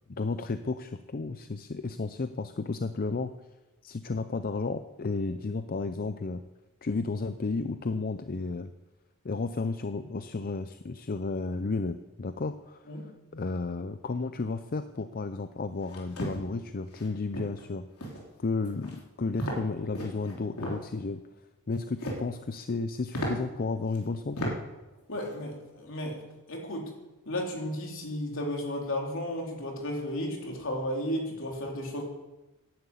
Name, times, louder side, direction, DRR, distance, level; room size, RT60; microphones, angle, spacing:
voice 1, 0.1-3.3 3.8-6.4 6.8-8.7 9.2-12.9 13.3-17.9 18.4-21.2 21.7-24.5, left 3 dB, 40° left, 10 dB, 0.5 m, -32 dB
sound 1, 15.8-16.4 16.9-17.1 17.3-17.6 18.0-18.3 18.6-19.0 19.4-19.6 19.9-20.8 21.7-22.3 22.7-22.8 23.1-23.3 23.9-24.0 24.4-24.5 24.9-25.3, right 1 dB, 85° left, 3.7 m, -35 dB
voice 2, 25.1-26.2 26.5-26.9 27.3-32.0, left 1 dB, 60° left, 0 dB, 3.5 m, -33 dB
11.0 x 10.5 x 8.4 m, 1.0 s
head